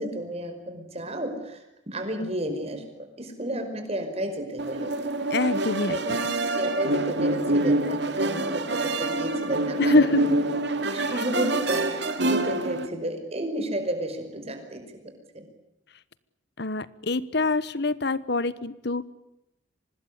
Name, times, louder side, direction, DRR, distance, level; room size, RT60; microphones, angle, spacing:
voice 1, 0.0-4.9 5.9-6.0 6.6-10.1 10.9-15.5, right 1 dB, 30° right, 6 dB, 5.3 m, -32 dB
sound 1, 4.6-12.9, right 2 dB, 60° right, 2.5 m, -26 dB
voice 2, 5.3-6.2 9.8-10.3 10.9-11.2 16.6-19.1, left 3 dB, 60° left, 17 dB, 1.2 m, -25 dB
25.0 x 20.0 x 10.0 m, 0.89 s
head